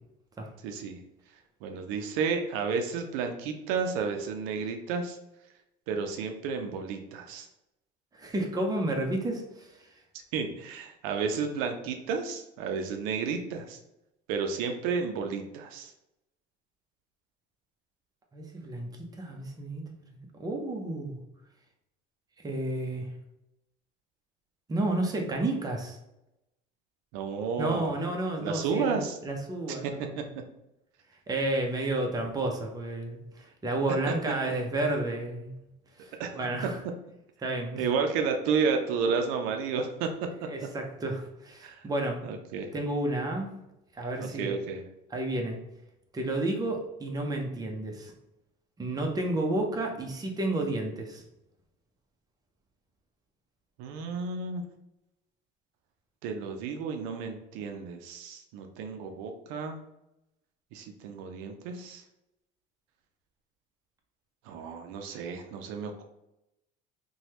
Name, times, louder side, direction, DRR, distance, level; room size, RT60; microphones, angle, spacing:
voice 1, 0.6-1.0 1.6-5.2 5.9-7.5 10.3-13.8 14.3-15.9 27.1-27.9 28.4-29.2 29.7-30.2 34.1-34.2 36.2-36.3 37.8-40.1 41.6-41.8 42.2-42.7 44.2-44.8 53.8-54.6 56.2-59.8 60.7-62.0 64.5-66.0, right 5 dB, 90° right, 5 dB, 0.5 m, -32 dB
voice 2, 8.2-9.7 18.3-18.9 19.2-19.8 20.3-21.2 22.4-23.1 24.7-26.0 27.6-30.1 31.3-35.6 36.0-36.8 37.4-37.8 40.4-42.2 42.7-43.5 43.9-44.5 45.1-45.6 46.1-48.1 48.8-51.2, right 2 dB, 20° right, 2 dB, 0.6 m, -31 dB
3.0 x 2.2 x 2.8 m, 0.88 s
cardioid pair, 100°, 20 cm